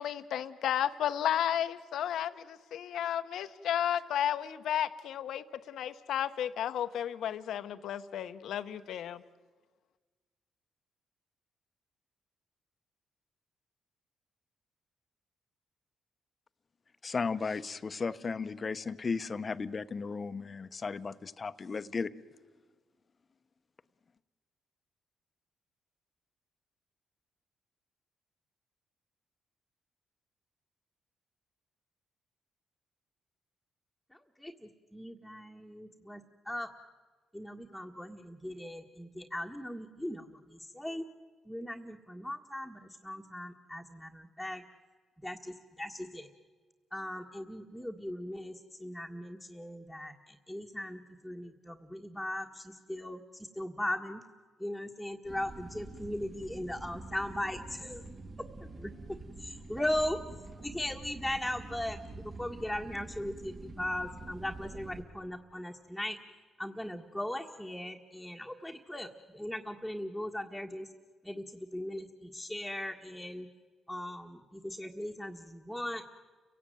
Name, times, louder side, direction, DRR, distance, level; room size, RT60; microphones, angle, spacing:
voice 1, 0.0-9.2, left 10 dB, 75° left, 10 dB, 1.1 m, -33 dB
voice 2, 17.0-22.1, left 4 dB, 40° left, 12 dB, 1.1 m, -35 dB
voice 3, 34.1-36.7 37.3-41.0 41.5-44.6 45.2-46.3 46.9-54.2 54.6-58.0 58.7-58.9 59.4-60.2 60.6-66.2 66.6-70.9 71.2-73.5 73.9-76.1, left 1 dB, ahead, 0 dB, 1.8 m, -38 dB
sound 1, 55.2-65.0, right 3 dB, 50° right, 4.6 m, -47 dB
30.0 x 17.0 x 9.3 m, 1.4 s
cardioid pair, 80°, 0 cm